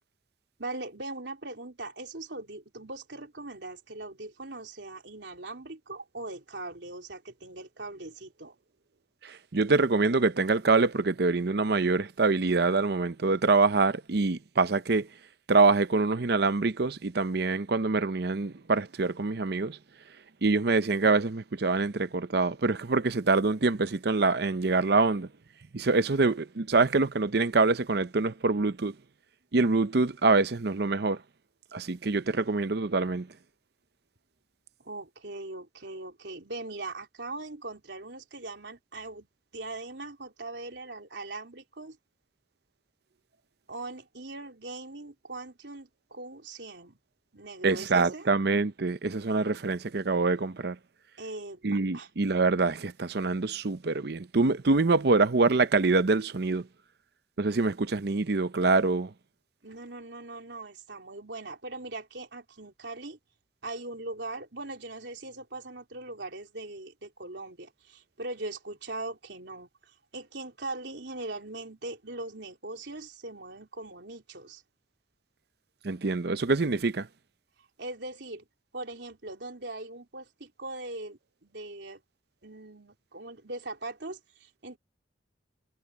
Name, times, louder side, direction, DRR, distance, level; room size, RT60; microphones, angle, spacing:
voice 1, 0.6-8.6 34.8-39.3 39.5-42.0 43.7-47.0 47.3-48.3 51.2-52.1 59.6-63.2 63.6-74.6 77.8-78.5 78.7-82.0 82.4-84.8, right 2 dB, 85° right, 3.5 m, -40 dB
voice 2, 9.2-15.1 15.5-19.8 20.4-25.3 25.7-28.9 29.5-31.2 31.7-33.3 47.6-50.8 51.6-56.7 57.4-59.1 75.8-77.1, right 3 dB, 65° right, 0.7 m, -25 dB
head